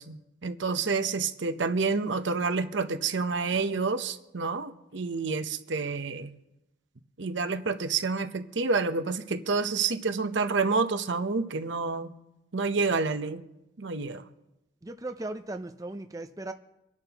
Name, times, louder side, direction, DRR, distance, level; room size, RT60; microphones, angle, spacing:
voice 1, 0.0-6.3 7.2-12.1 12.5-13.4 13.8-14.2, right 4 dB, 65° right, 8 dB, 0.8 m, -29 dB
voice 2, 14.8-16.5, right 2 dB, 20° right, 7 dB, 0.4 m, -37 dB
25.5 x 11.0 x 2.9 m, 0.93 s
head